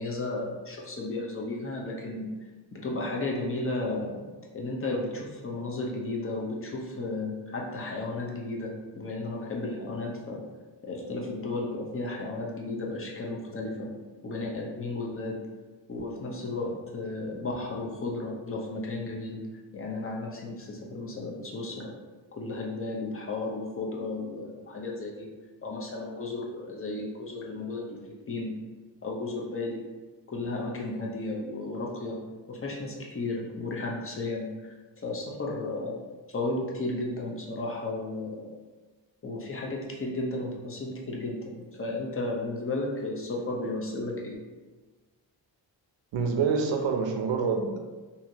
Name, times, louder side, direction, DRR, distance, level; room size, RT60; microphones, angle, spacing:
voice 1, 0.0-2.3 2.7-4.3 4.5-10.4 10.8-13.9 14.2-15.4 15.9-19.4 19.7-21.9 22.3-25.3 25.6-28.5 29.0-29.8 30.3-32.2 32.5-34.5 35.0-36.0 36.3-38.5 39.2-44.4, left 2 dB, 30° left, -1 dB, 0.6 m, -34 dB
voice 2, 46.1-47.8, right 5 dB, 75° right, 3 dB, 0.6 m, -26 dB
2.8 x 2.6 x 2.6 m, 1.3 s
cardioid pair, 80°, 45 cm